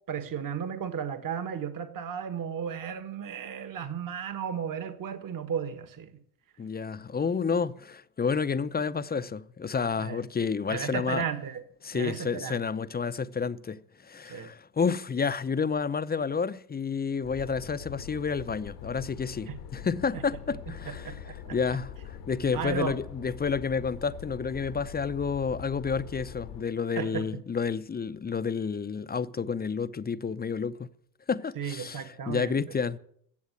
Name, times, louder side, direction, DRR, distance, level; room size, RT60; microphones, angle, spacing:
voice 1, 0.1-6.1 10.0-10.2 10.7-11.6 11.9-12.6 14.3-14.5 19.5-19.6 20.1-20.2 20.9-21.6 22.5-23.0 27.0-27.4 31.5-32.6, right 7 dB, 45° right, 1.6 m, -34 dB
voice 2, 6.6-11.2 11.8-30.9 31.3-33.0, left 5 dB, 20° left, 0.6 m, -30 dB
sound 1, 17.2-26.6, left 8 dB, 90° left, 1.7 m, -43 dB
16.0 x 7.2 x 8.3 m
supercardioid pair, 75°, 48 cm